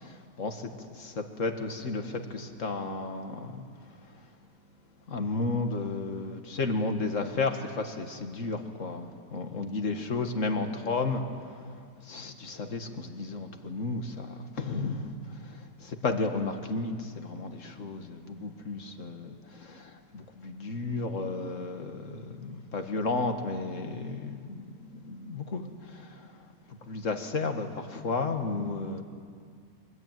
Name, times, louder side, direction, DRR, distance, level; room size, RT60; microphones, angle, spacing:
voice 1, 0.0-4.2 5.1-29.0, left 3 dB, 45° left, 6 dB, 2.0 m, -33 dB
24.5 x 21.0 x 9.4 m, 2.2 s
omnidirectional pair, 1.9 m